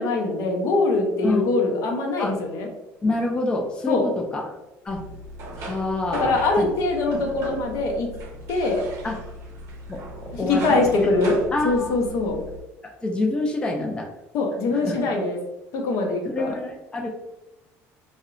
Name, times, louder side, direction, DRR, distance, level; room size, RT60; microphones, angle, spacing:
voice 1, 0.0-2.7 3.9-4.1 6.2-8.1 8.5-8.9 10.5-11.4 11.6-12.4 14.3-15.4 15.7-16.5, left 3 dB, 65° left, 2 dB, 0.6 m, -23 dB
voice 2, 3.0-4.5 4.8-5.0 5.6-6.7 9.0-9.2 9.9-10.9 11.5-12.0 12.8-14.1 14.7-15.0 16.3-17.1, left 2 dB, 15° left, 1 dB, 0.3 m, -27 dB
sound 1, 4.9-12.6, right 1 dB, 55° right, 0.5 m, -37 dB
2.7 x 2.0 x 2.5 m, 0.98 s
cardioid pair, 120°, 6 cm